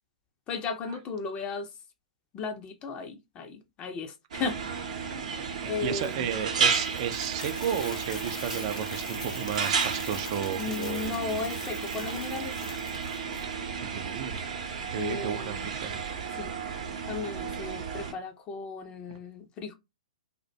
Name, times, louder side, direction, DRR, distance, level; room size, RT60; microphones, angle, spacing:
voice 1, 0.5-1.8 2.3-4.9 5.6-6.3 10.6-12.8 14.9-15.7 16.3-16.5 17.1-19.7, left 4 dB, 25° left, 0.5 m, -35 dB
sound 1, 4.3-18.1, right 5 dB, 65° right, 0.7 m, -33 dB
voice 2, 5.6-11.4 13.8-14.4 14.9-15.9, right 9 dB, 45° right, 0.4 m, -33 dB
Coin (dropping), 6.0-13.4, left 4 dB, 75° left, 0.6 m, -44 dB
2.4 x 2.1 x 2.6 m
hypercardioid pair, 115°, 4 cm